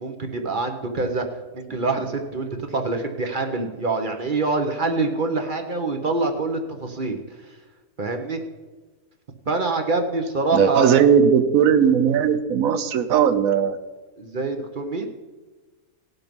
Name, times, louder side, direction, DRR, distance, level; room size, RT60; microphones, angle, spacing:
voice 1, 0.0-1.2 1.5-7.2 8.0-8.4 9.5-11.0 14.2-15.1, right 3 dB, 40° right, 5 dB, 0.9 m, -25 dB
voice 2, 10.5-13.8, right 7 dB, 70° right, 10 dB, 1.1 m, -18 dB
17.5 x 6.0 x 5.2 m, 1.2 s
omnidirectional pair, 1.6 m